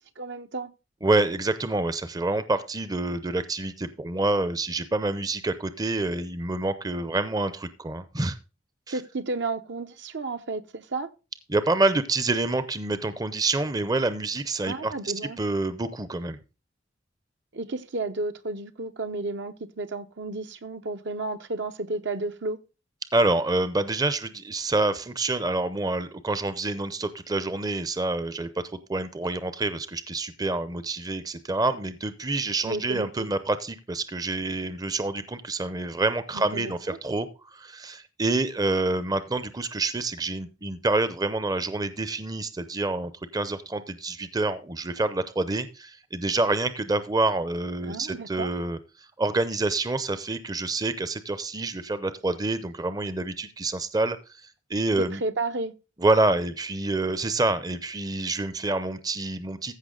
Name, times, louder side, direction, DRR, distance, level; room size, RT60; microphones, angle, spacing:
voice 1, 0.2-0.7 8.9-11.1 14.6-15.4 17.5-22.6 32.6-33.3 36.5-37.0 47.8-48.5 55.0-55.7, right 3 dB, 60° right, 0.9 m, -32 dB
voice 2, 1.0-8.4 11.5-16.4 23.1-28.5 28.9-48.8 49.2-54.4 54.7-55.2 56.0-59.7, right 2 dB, 20° right, 0.6 m, -27 dB
15.0 x 5.7 x 3.8 m
head